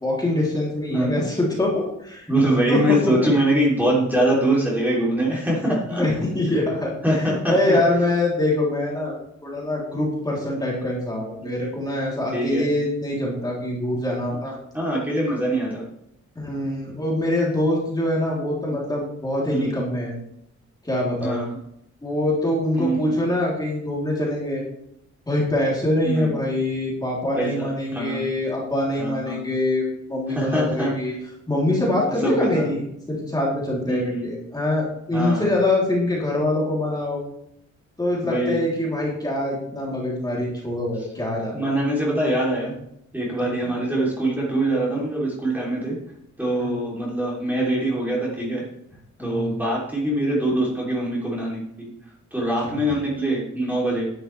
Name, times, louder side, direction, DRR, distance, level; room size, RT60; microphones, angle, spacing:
voice 1, 0.0-2.3 2.7-3.3 5.7-9.1 9.4-14.5 16.3-20.1 20.8-21.4 22.0-24.6 25.3-31.1 31.5-32.8 33.1-37.2 38.0-41.7 43.4-43.7 46.6-46.8 49.2-49.6 52.6-52.8, left 1 dB, 15° left, -4 dB, 3.3 m, -24 dB
voice 2, 2.3-6.0 6.5-6.6 7.0-7.8 12.3-12.7 14.7-15.8 19.5-19.7 21.2-21.6 22.7-23.2 26.0-26.3 27.4-28.2 29.0-29.4 30.3-30.9 32.2-32.7 33.9-34.3 35.1-35.5 38.2-38.6 41.5-42.7 43.1-46.0 46.4-48.6 49.2-51.9 52.3-54.1, right 1 dB, 5° right, -5 dB, 3.2 m, -23 dB
11.5 x 11.0 x 3.3 m, 0.77 s
wide cardioid pair, 175°, 30 cm